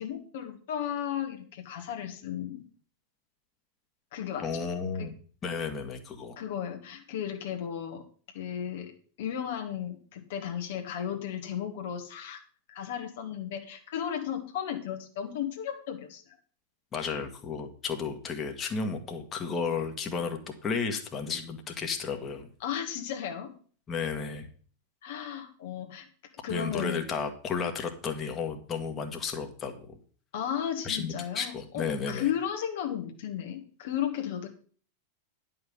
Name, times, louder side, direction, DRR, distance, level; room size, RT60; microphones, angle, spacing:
voice 1, 0.0-2.6 4.1-4.6 5.0-5.1 6.4-8.0 8.3-8.9 9.2-12.4 12.7-16.2 22.6-23.5 25.0-26.1 26.4-27.0 30.3-34.5, left 9 dB, 55° left, 4 dB, 1.4 m, -34 dB
voice 2, 4.4-5.1 5.4-6.4 16.9-22.5 23.9-24.5 26.5-30.0 30.8-32.3, left 5 dB, 25° left, 5 dB, 1.6 m, -33 dB
10.5 x 5.6 x 7.1 m, 0.43 s
figure-of-eight pair, 90°, 0 cm